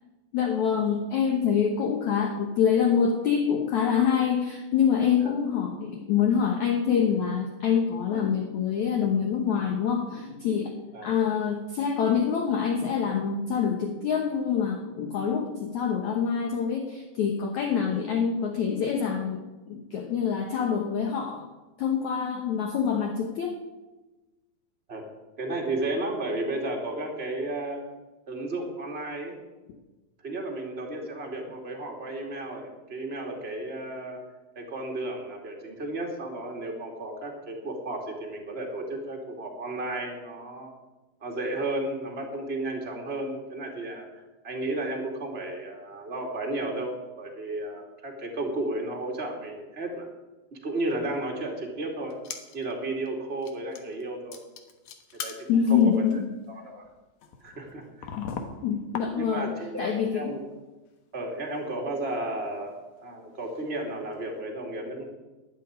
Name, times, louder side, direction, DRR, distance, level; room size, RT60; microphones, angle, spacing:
voice 1, 0.3-10.8 11.0-19.4 19.7-21.5 21.8-23.5 55.5-56.3 58.2-58.3 58.6-59.5 59.8-60.4, left 7 dB, 90° left, 4 dB, 1.6 m, -25 dB
voice 2, 25.4-27.8 28.3-29.4 30.2-34.2 34.5-40.7 41.2-44.1 44.4-50.1 50.6-52.1 52.5-54.4 55.2-55.9 56.5-56.8 57.4-58.1 59.2-60.4 61.1-65.0, right 2 dB, 25° right, 1 dB, 1.2 m, -33 dB
sound 1, 52.1-52.7 53.1-53.2 53.4-54.0 54.3-59.6 59.9-60.6 60.9-61.0 61.5-63.7 64.1-64.2, left 6 dB, 70° left, 1.7 m, -42 dB
12.0 x 8.3 x 10.0 m, 1.1 s
omnidirectional pair, 5.2 m